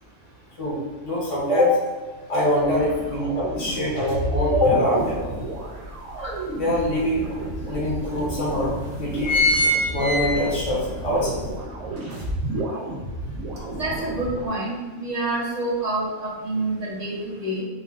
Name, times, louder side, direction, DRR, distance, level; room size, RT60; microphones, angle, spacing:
voice 1, 0.6-1.8 2.3-5.3 6.2-7.3 7.7-9.3 9.9-11.4 13.6-13.8, left 1 dB, 35° left, -5 dB, 0.6 m, -24 dB
sound 1, 2.6-14.5, right 1 dB, 85° right, 1.3 m, -31 dB
sound 2, 5.0-5.1 5.6-6.8 7.4-7.5 7.7-7.8 8.5-8.7 9.0-10.8 11.2-11.3, left 1 dB, 80° left, 1.1 m, -22 dB
voice 2, 13.7-17.6, right 2 dB, 40° right, -4 dB, 0.6 m, -27 dB
4.5 x 2.2 x 2.3 m, 1.3 s
omnidirectional pair, 1.3 m